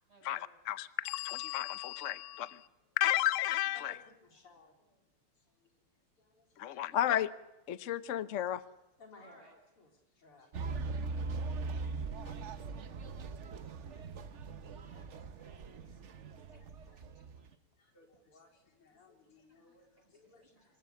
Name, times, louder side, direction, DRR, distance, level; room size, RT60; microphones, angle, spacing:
voice 1, 0.1-0.5 9.1-9.5 10.9-11.5 16.5-17.5 19.2-20.8, right 1 dB, 30° right, 0 dB, 7.4 m, -65 dB
voice 2, 0.7-2.7 3.0-4.0 6.6-7.3 7.7-8.6, left 13 dB, 60° left, 15 dB, 0.8 m, -32 dB
voice 3, 3.7-7.0 9.0-10.8 11.9-12.9 13.4-14.1 14.4-17.0 17.8-20.8, left 3 dB, 85° left, 3 dB, 4.8 m, -63 dB
sound 1, 10.5-17.5, right 4 dB, 50° right, 0.9 m, -40 dB
26.0 x 15.0 x 8.1 m, 1.0 s
omnidirectional pair, 2.4 m